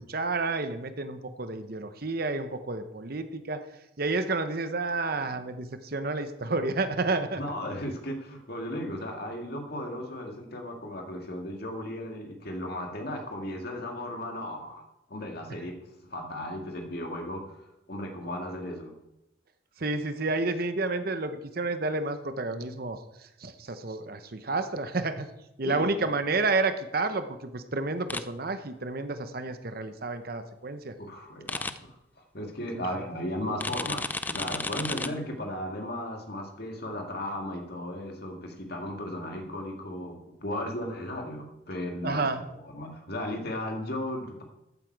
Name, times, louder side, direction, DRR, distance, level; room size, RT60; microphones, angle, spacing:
voice 1, 0.1-3.6 4.0-7.4 19.8-23.0 23.4-25.3 25.6-30.9 32.8-32.9 42.0-42.4, right 3 dB, 50° right, 9 dB, 0.9 m, -30 dB
voice 2, 7.4-14.8 15.1-15.7 16.1-17.6 17.9-18.9 25.6-26.1 31.0-31.9 32.3-42.2 42.6-44.4, left 1 dB, 50° left, 2 dB, 2.1 m, -35 dB
sound 1, 28.1-28.2 31.5-31.7 33.6-35.1, left 3 dB, 10° left, 0.3 m, -32 dB
14.0 x 8.8 x 4.7 m, 0.86 s
head